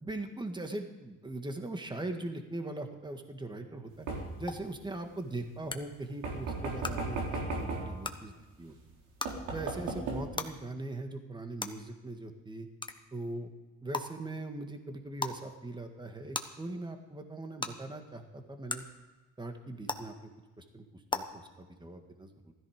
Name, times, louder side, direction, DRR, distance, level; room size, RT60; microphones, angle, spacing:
voice 1, 0.0-4.1 4.4-8.8 9.5-12.7 13.1-13.5 13.8-18.8 19.4-20.3 20.6-20.8 21.1-22.5, right 2 dB, 15° right, 5 dB, 1.8 m, -40 dB
sound 1, 4.1-4.5 6.2-8.0 8.8-8.9 9.3-10.2, right 3 dB, 90° right, 3.7 m, -35 dB
sound 2, 4.5-4.6 5.7-5.8 6.8-6.9 8.0-8.1 9.2-9.3 10.4-10.5 11.6-11.7 12.8-12.9 13.9-14.0 15.2-15.3 16.3-16.4 17.6-17.7 18.7-18.8 19.9-20.0 21.1-21.2, left 3 dB, 15° left, 1.2 m, -33 dB
15.5 x 14.0 x 5.1 m, 1.2 s
cardioid pair, 90°, 30 cm